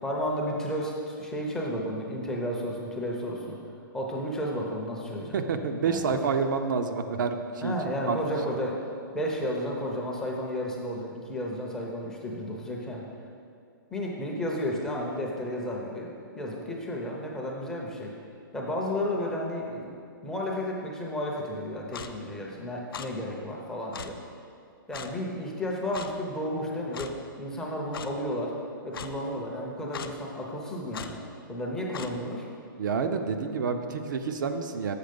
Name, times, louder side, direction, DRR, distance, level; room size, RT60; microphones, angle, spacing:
voice 1, 0.0-3.6 3.9-5.4 5.8-6.2 7.6-8.8 9.1-13.0 13.9-18.1 18.5-20.0 20.2-24.2 24.9-28.6 28.8-31.2 31.5-32.5, equal, 5° left, -2 dB, 0.5 m, -32 dB
voice 2, 5.3-7.7 8.1-8.2 32.8-35.0, right 5 dB, 60° right, 6 dB, 0.5 m, -28 dB
Clock, 21.9-22.1 22.9-23.1 23.9-24.1 24.9-25.1 25.9-26.1 26.9-27.1 27.9-28.1 28.9-29.1 29.9-30.1 30.9-31.1 31.9-32.1, left 7 dB, 80° left, 0.5 m, -38 dB
6.6 x 5.8 x 5.2 m, 2.4 s
hypercardioid pair, 165°, 12 cm